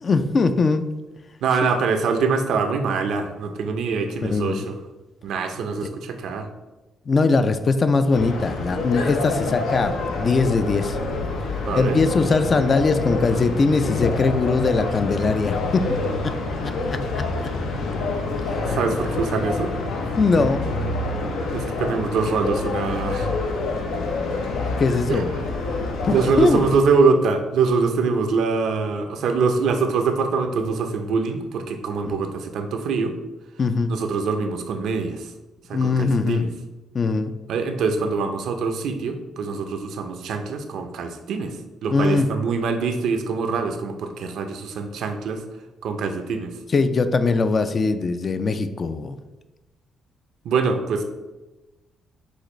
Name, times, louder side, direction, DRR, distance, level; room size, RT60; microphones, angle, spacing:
voice 1, 0.0-0.9 1.6-1.7 4.2-4.7 7.1-11.0 11.8-15.9 16.2-16.4 16.6-17.5 18.5-18.8 20.2-20.7 24.8-25.3 26.0-26.6 32.0-32.2 33.6-33.9 35.7-36.5 36.9-37.3 41.9-42.3 46.7-49.2, left 4 dB, 40° left, 10 dB, 0.3 m, -21 dB
voice 2, 1.4-4.7 5.2-6.5 11.7-12.0 18.7-19.7 21.5-23.3 25.1-25.2 26.1-33.1 33.9-35.3 35.7-36.5 37.5-41.5 41.8-45.4 45.8-46.5 50.5-51.0, right 4 dB, 75° right, 6 dB, 0.5 m, -24 dB
sound 1, 8.1-26.8, left 3 dB, 85° left, 0.6 m, -27 dB
6.3 x 2.5 x 3.1 m, 1.1 s
cardioid pair, 90°, 0 cm